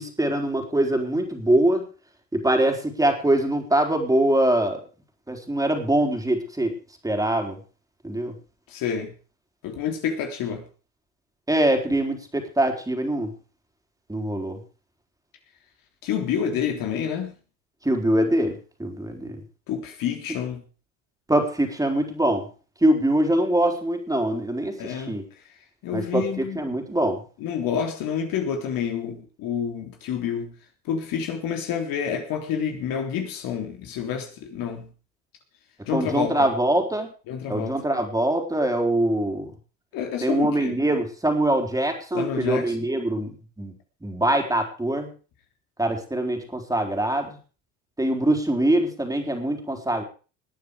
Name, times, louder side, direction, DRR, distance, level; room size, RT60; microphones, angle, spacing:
voice 1, 0.0-1.9 2.3-4.8 5.3-6.7 7.0-7.6 8.0-8.3 11.5-13.3 14.1-14.6 17.8-19.4 21.3-22.4 22.8-25.2 25.9-27.2 35.9-37.1 37.5-39.5 40.2-43.3 43.6-43.7 44.0-45.1 45.8-47.4 48.0-50.0, right 1 dB, 10° right, 3.9 m, -23 dB
voice 2, 8.7-9.1 9.6-10.6 16.0-17.3 19.7-20.6 24.8-25.2 25.8-26.6 27.4-30.5 30.9-34.9 35.9-36.5 37.3-37.8 39.9-40.8 42.1-42.8, left 8 dB, 60° left, 3.5 m, -28 dB
19.5 x 9.4 x 5.0 m
supercardioid pair, 85°, 38 cm